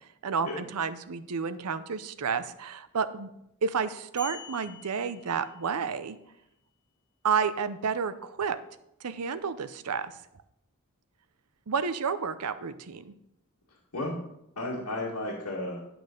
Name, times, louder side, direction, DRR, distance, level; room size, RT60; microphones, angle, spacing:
voice 1, 0.2-3.3 3.6-6.2 7.2-8.6 9.0-10.1 11.7-13.1, right 6 dB, 85° right, 13 dB, 0.6 m, -30 dB
sound 1, 4.2-6.0, left 2 dB, 10° left, 3.3 m, -46 dB
voice 2, 13.7-14.2 14.6-15.8, left 1 dB, 80° left, -4 dB, 1.9 m, -34 dB
10.5 x 6.0 x 5.2 m, 0.81 s
head